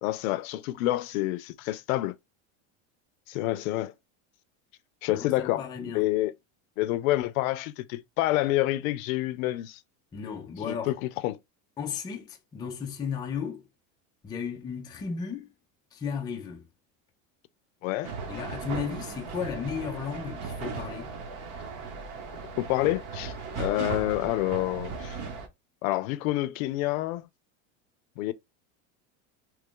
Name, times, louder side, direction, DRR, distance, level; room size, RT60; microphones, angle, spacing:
voice 1, 0.0-2.1 3.3-3.9 5.0-6.3 6.8-9.8 10.7-11.4 17.8-18.1 22.6-25.2 25.8-27.3 28.2-28.3, left 16 dB, 80° left, 0.5 m, -28 dB
voice 2, 5.1-6.1 10.1-10.9 11.8-13.6 14.2-15.5 15.9-16.7 18.3-21.1, left 6 dB, 10° left, 0.3 m, -34 dB
sound 1, 18.0-25.5, right 5 dB, 50° right, 1.0 m, -37 dB
3.0 x 2.3 x 3.6 m
supercardioid pair, 140°, 40 cm